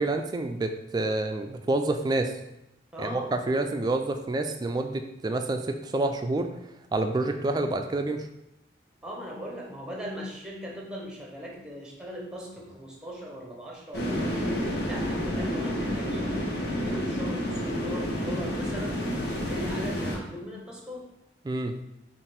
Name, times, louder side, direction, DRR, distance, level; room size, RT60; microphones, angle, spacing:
voice 1, 0.0-2.3 3.0-6.5 6.9-8.3 21.4-21.7, right 2 dB, 25° right, 6 dB, 0.3 m, -28 dB
voice 2, 2.9-3.3 9.0-19.0 19.3-21.1, equal, 5° right, -2 dB, 0.8 m, -39 dB
sound 1, 13.9-20.2, equal, 65° left, 1.0 m, -29 dB
5.5 x 2.5 x 3.4 m, 0.86 s
head